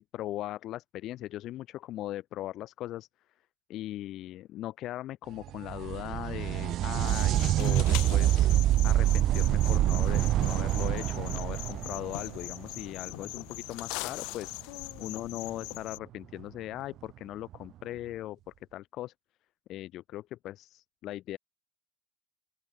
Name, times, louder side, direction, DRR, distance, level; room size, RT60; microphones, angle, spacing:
voice 1, 0.0-3.1 3.7-8.5 8.8-14.5 15.0-18.4 18.7-19.1 19.7-21.4, left 14 dB, 65° left, 5.1 m, -39 dB
sound 1, 5.4-13.0 16.4-16.5 17.5-17.6, right 13 dB, 60° right, 0.7 m, -26 dB
sound 2, 7.0-16.0, left 29 dB, 80° left, 4.9 m, -41 dB
open air
supercardioid pair, 85°, 0 cm